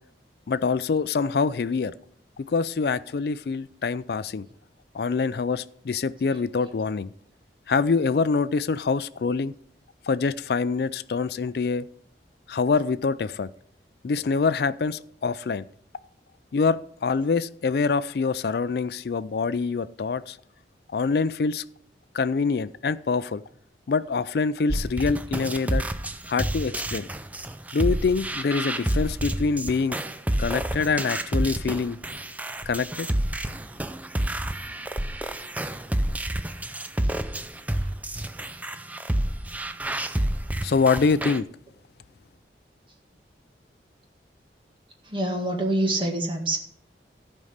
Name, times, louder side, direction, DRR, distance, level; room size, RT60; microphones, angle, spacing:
voice 1, 0.5-1.9 2.4-4.5 4.9-7.1 7.7-9.5 10.1-11.9 12.5-13.5 14.0-15.6 16.5-20.4 20.9-21.6 22.1-23.4 23.9-25.8 26.3-27.1 27.7-30.0 30.4-32.0 32.7-33.1 40.6-41.5, left 4 dB, 60° left, 16 dB, 0.4 m, -25 dB
sound 1, 24.7-41.4, right 1 dB, 10° right, 0.4 m, -29 dB
voice 2, 45.1-46.6, right 1 dB, 30° right, 1 dB, 1.9 m, -25 dB
14.0 x 5.4 x 6.5 m, 0.66 s
head